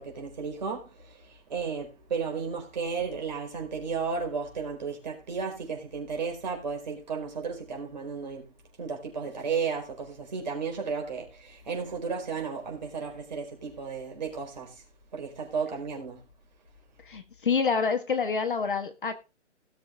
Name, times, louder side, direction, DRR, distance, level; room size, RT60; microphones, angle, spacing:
voice 1, 0.0-8.5 8.8-14.8 15.1-16.2, right 5 dB, 35° right, 4.8 m, -34 dB
voice 2, 17.1-19.1, left 5 dB, 45° left, 1.6 m, -27 dB
18.0 x 7.1 x 3.7 m
hypercardioid pair, 180°, 36 cm